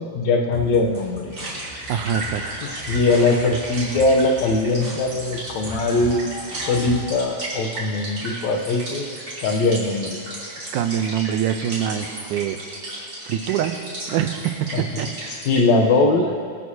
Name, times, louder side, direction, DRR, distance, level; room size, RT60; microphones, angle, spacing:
voice 1, 0.0-1.3 2.6-6.3 6.7-9.1 9.4-10.2 14.7-15.1 15.5-16.3, left 3 dB, 70° left, 2 dB, 2.0 m, -21 dB
sound 1, 0.5-7.3, left 1 dB, 5° right, 2.8 m, -37 dB
sound 2, 1.3-15.6, right 1 dB, 35° right, 3.6 m, -34 dB
voice 2, 1.9-2.7 10.7-12.6 13.2-13.7 14.1-15.4, right 10 dB, 85° right, 8 dB, 2.2 m, -25 dB
26.0 x 9.3 x 2.8 m, 2.1 s
omnidirectional pair, 3.6 m